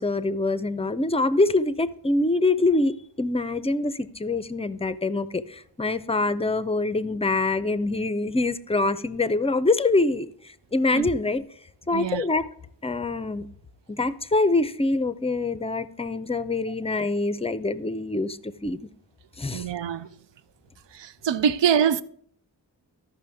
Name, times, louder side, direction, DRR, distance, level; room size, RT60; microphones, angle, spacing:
voice 1, 0.0-10.3 10.7-11.4 11.9-12.5 12.8-13.5 13.9-18.9 19.4-19.6, left 2 dB, 15° left, 0.5 m, -25 dB
voice 2, 11.9-12.2 19.5-20.1 20.9-22.0, right 8 dB, 75° right, 0.5 m, -24 dB
13.5 x 5.6 x 3.5 m
wide cardioid pair, 50°, 43 cm